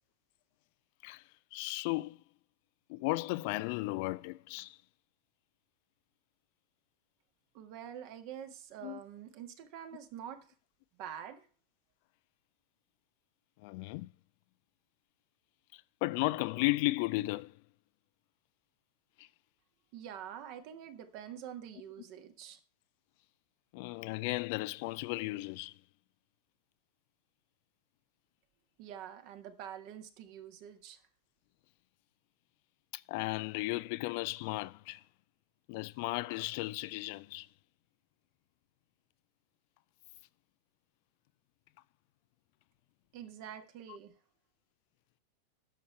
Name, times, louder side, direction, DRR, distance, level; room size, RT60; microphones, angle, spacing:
voice 1, 1.5-2.2 2.9-4.8 8.8-9.0 13.6-14.1 15.7-17.5 19.2-19.3 23.7-25.8 32.9-35.0 35.7-37.5, left 21 dB, 45° left, 0.3 m, -35 dB
voice 2, 7.5-10.4 11.0-11.5 19.9-22.6 28.8-31.0 43.1-44.1, right 9 dB, 45° right, 1.6 m, -46 dB
10.5 x 7.2 x 4.5 m
figure-of-eight pair, 90°, 0 cm